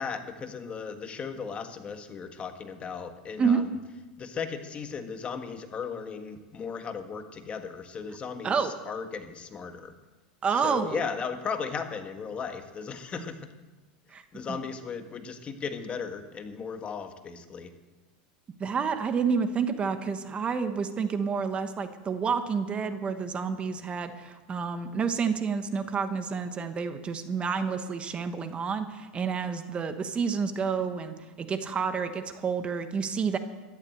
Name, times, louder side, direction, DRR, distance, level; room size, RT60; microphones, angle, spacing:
voice 1, 0.0-3.8 4.2-10.0 10.5-13.4 14.3-17.7, left 5 dB, 25° left, 7 dB, 1.5 m, -36 dB
voice 2, 10.4-11.0 14.1-14.2 14.5-14.6 18.6-33.4, right 5 dB, 25° right, 9 dB, 1.2 m, -29 dB
13.5 x 11.0 x 7.9 m, 1.2 s
supercardioid pair, 115°, 4 cm